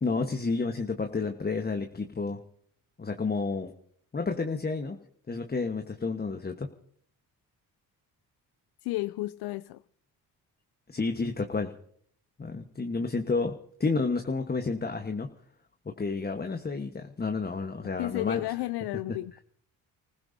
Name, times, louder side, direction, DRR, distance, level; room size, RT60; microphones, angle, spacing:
voice 1, 0.0-2.4 3.0-3.7 4.1-5.0 5.3-6.7 10.9-11.7 12.4-15.3 15.8-18.4, left 4 dB, 25° left, 1.3 m, -30 dB
voice 2, 8.8-9.8 18.0-19.4, left 18 dB, 80° left, 0.5 m, -32 dB
30.0 x 15.5 x 2.7 m
cardioid pair, 70°, 39 cm